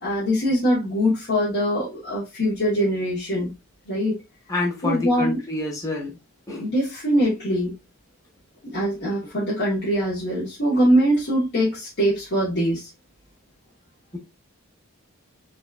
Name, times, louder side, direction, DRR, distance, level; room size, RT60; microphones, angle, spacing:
voice 1, 0.0-3.5 3.9-4.2 4.8-5.4 6.6-7.7 8.6-12.9, equal, 50° left, 1.4 m, -22 dB
voice 2, 4.5-6.2 6.5-6.7, left 3 dB, 15° left, 1.4 m, -27 dB
4.1 x 3.5 x 2.4 m
head